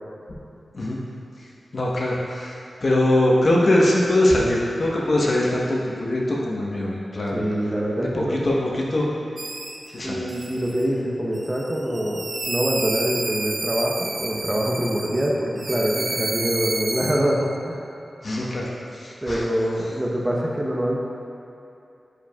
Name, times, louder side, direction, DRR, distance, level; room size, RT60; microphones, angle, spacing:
voice 1, 1.7-2.5 2.8-7.4 8.0-9.1 9.9-10.2 18.2-19.4, left 1 dB, 55° left, -4 dB, 1.1 m, -22 dB
voice 2, 7.3-8.4 10.0-17.8 19.2-21.0, equal, 20° right, -3 dB, 0.9 m, -25 dB
sound 1, 9.4-9.9 10.3-10.8 11.3-15.3 15.6-17.1, right 2 dB, 55° right, 0.6 m, -30 dB
9.9 x 4.8 x 2.4 m, 2.7 s
cardioid pair, 55°, 0 cm